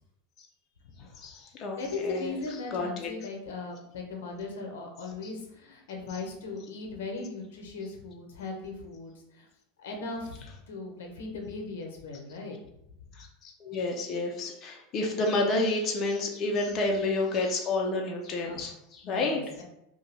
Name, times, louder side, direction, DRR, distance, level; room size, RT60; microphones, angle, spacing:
voice 1, 1.2-2.3 2.7-3.1 13.2-19.4, left 2 dB, 40° left, 1 dB, 0.5 m, -30 dB
voice 2, 1.8-9.5 9.8-12.6 18.4-18.6 19.0-19.6, left 3 dB, 85° left, 1 dB, 0.7 m, -38 dB
2.8 x 2.2 x 3.2 m, 0.83 s
supercardioid pair, 120°, 0 cm